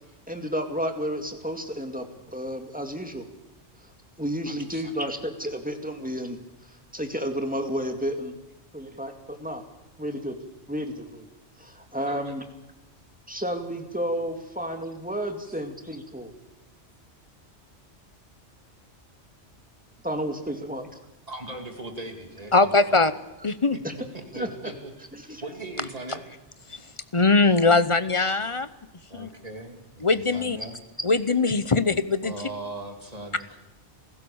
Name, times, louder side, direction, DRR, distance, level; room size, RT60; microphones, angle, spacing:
voice 1, 0.3-2.1 2.3-3.2 4.2-6.4 6.9-8.4 8.7-9.6 10.0-10.4 10.7-11.3 11.6-12.4 13.3-16.3 20.0-20.9 23.8-23.9 24.3-24.5 25.1-25.4, equal, 5° right, 5 dB, 2.2 m, -31 dB
voice 2, 4.5-4.9 12.1-12.3 15.4-15.5 21.3-23.0 23.7-23.8 24.1-26.2 29.1-30.8 32.2-33.6, right 2 dB, 35° right, 3 dB, 3.0 m, -39 dB
voice 3, 22.5-23.1 23.4-23.8 26.7-26.8 27.1-28.7 29.1-29.3 30.0-30.6 31.0-32.3, left 3 dB, 30° left, 13 dB, 0.8 m, -21 dB
29.0 x 16.0 x 7.1 m, 1.0 s
omnidirectional pair, 1.2 m